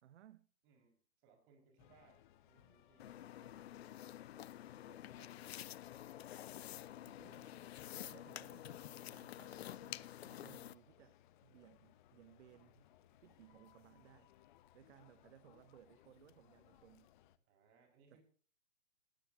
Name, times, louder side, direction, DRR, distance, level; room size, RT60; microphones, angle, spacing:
voice 1, 0.0-0.5 7.0-12.9 13.2-14.3 14.7-17.1 18.1-18.2, right 11 dB, 60° right, 0.8 m, -63 dB
voice 2, 0.6-2.2 2.5-5.4 8.0-8.3 17.5-18.2, right 4 dB, 30° right, 5.3 m, -69 dB
sound 1, 1.8-17.4, left 12 dB, 40° left, 0.9 m, -66 dB
sound 2, 3.0-10.7, left 12 dB, 55° left, 0.5 m, -49 dB
18.0 x 13.5 x 2.8 m
hypercardioid pair, 125°, 39 cm